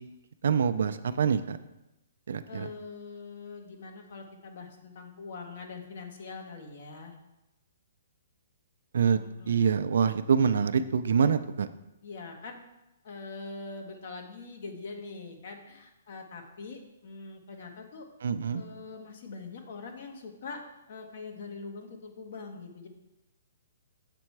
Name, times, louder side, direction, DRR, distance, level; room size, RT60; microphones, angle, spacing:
voice 1, 0.4-1.6 2.3-2.7 8.9-9.2 9.5-11.7 18.2-18.6, right 6 dB, 70° right, 11 dB, 0.4 m, -25 dB
voice 2, 2.5-7.1 9.2-9.6 12.0-12.6 13.0-18.1 18.5-20.6 20.9-22.9, left 4 dB, 60° left, 4 dB, 1.3 m, -43 dB
7.6 x 4.3 x 4.7 m, 0.94 s
hypercardioid pair, 150°, 0 cm